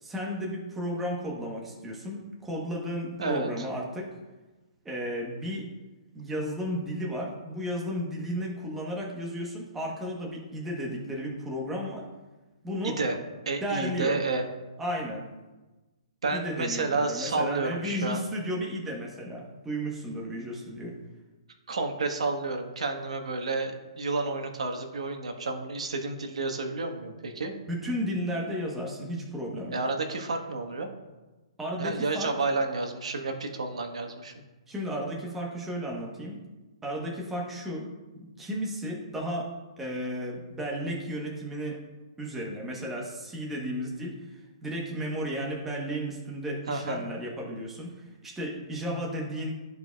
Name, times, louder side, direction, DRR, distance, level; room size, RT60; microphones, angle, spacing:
voice 1, 0.0-4.1 4.8-5.7 6.1-12.1 12.6-13.0 13.6-14.2 14.8-15.2 16.3-21.0 27.7-29.8 31.6-32.3 34.7-36.4 36.8-39.5 39.8-41.8 42.2-49.5, equal, 5° right, -2 dB, 1.0 m, -33 dB
voice 2, 3.2-3.7 12.8-13.2 13.4-14.5 16.2-18.2 21.7-27.5 29.7-30.9 31.8-34.3 46.7-47.0, right 3 dB, 80° right, 5 dB, 1.2 m, -30 dB
13.5 x 4.8 x 2.3 m, 1.2 s
hypercardioid pair, 165°, 3 cm